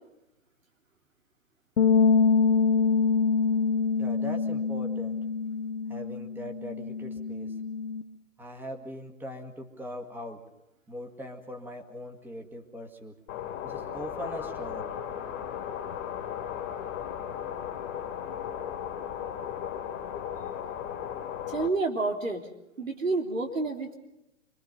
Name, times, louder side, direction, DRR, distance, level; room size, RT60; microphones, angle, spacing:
sound 1, 1.8-8.0, left 5 dB, 70° left, 1.7 m, -25 dB
voice 1, 4.0-5.2 5.9-7.6 8.4-10.4 10.9-13.2 13.6-15.0, equal, 5° right, 4 dB, 2.0 m, -40 dB
sound 2, 13.3-21.7, left 9 dB, 30° left, 2.2 m, -36 dB
voice 2, 21.5-22.5 22.8-23.9, right 3 dB, 90° right, 3 dB, 3.6 m, -29 dB
27.0 x 22.5 x 5.4 m, 0.88 s
hypercardioid pair, 135°, 38 cm